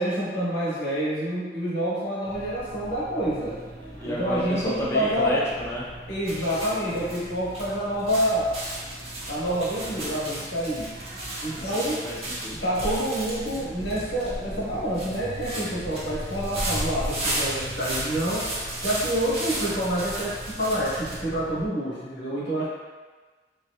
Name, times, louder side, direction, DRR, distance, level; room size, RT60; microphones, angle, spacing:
voice 1, 0.0-3.6 4.0-5.4 6.1-8.5 9.3-11.0 11.4-12.0 12.6-22.7, equal, 80° left, -8 dB, 1.5 m, -27 dB
sound 1, 2.2-21.7, equal, 70° right, 0.7 m, -40 dB
voice 2, 3.8-5.9 11.5-12.6, equal, 15° left, -6 dB, 0.7 m, -31 dB
sound 2, 6.2-21.1, right 1 dB, 35° right, 1.1 m, -35 dB
sound 3, 14.5-19.6, left 1 dB, 45° left, 0.8 m, -41 dB
4.1 x 2.9 x 2.5 m, 1.3 s
head